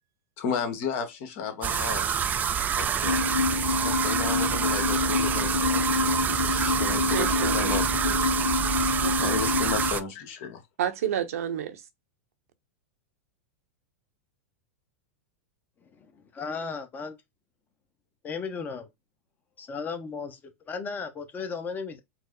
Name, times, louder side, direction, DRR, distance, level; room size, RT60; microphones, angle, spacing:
voice 1, 0.4-2.2 2.7-3.3 3.8-8.3 9.2-10.6, left 6 dB, 55° left, 1.2 m, -34 dB
sound 1, 1.6-10.0, right 8 dB, 20° right, 0.3 m, -27 dB
sound 2, 3.0-9.9, left 5 dB, 85° left, 0.6 m, -27 dB
voice 2, 7.1-7.8 9.0-9.4 10.8-11.8, right 10 dB, 75° right, 0.8 m, -30 dB
voice 3, 15.9-17.1 18.2-18.9 19.6-22.0, left 5 dB, 25° left, 0.9 m, -35 dB
4.6 x 2.0 x 3.8 m
hypercardioid pair, 120°, 8 cm